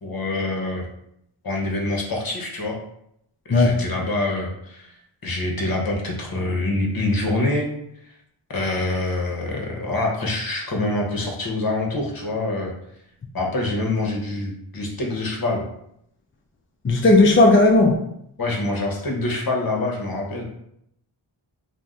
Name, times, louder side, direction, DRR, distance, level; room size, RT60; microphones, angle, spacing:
voice 1, 0.0-0.9 1.4-2.8 3.5-4.9 5.2-7.7 8.5-12.7 13.3-15.6 18.4-20.4, left 2 dB, 45° left, 0 dB, 0.8 m, -25 dB
voice 2, 3.5-3.8 16.8-18.0, left 2 dB, 30° left, 0 dB, 0.3 m, -15 dB
2.6 x 2.1 x 3.5 m, 0.75 s
wide cardioid pair, 40°, 50 cm